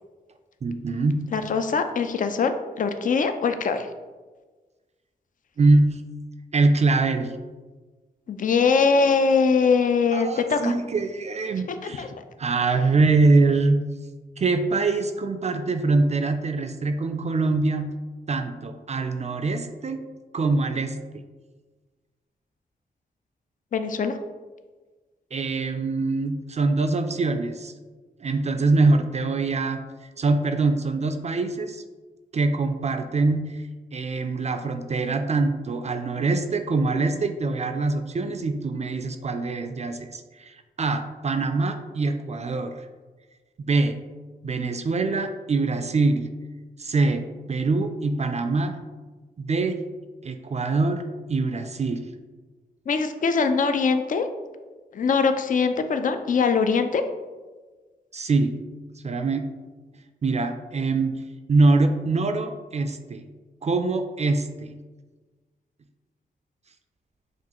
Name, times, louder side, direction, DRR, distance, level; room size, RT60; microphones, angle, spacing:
voice 1, 0.6-1.2 5.6-6.0 6.5-7.3 10.1-12.1 12.4-13.8 14.4-17.9 18.3-20.0 20.3-21.2 25.3-27.7 28.2-29.8 30.2-31.8 32.3-33.6 33.9-42.9 43.6-44.0 44.4-46.3 46.8-48.8 49.4-49.8 50.2-51.0 51.3-52.1 58.1-58.5 59.0-59.5 60.2-61.2 61.5-63.2 63.6-64.7, right 3 dB, 40° right, 7 dB, 0.4 m, -24 dB
voice 2, 1.3-3.9 8.3-10.7 11.8-12.1 23.7-24.2 52.9-54.3 54.9-57.0, left 5 dB, 50° left, 8 dB, 0.4 m, -22 dB
5.9 x 2.4 x 2.9 m, 1.3 s
cardioid pair, 55°, 17 cm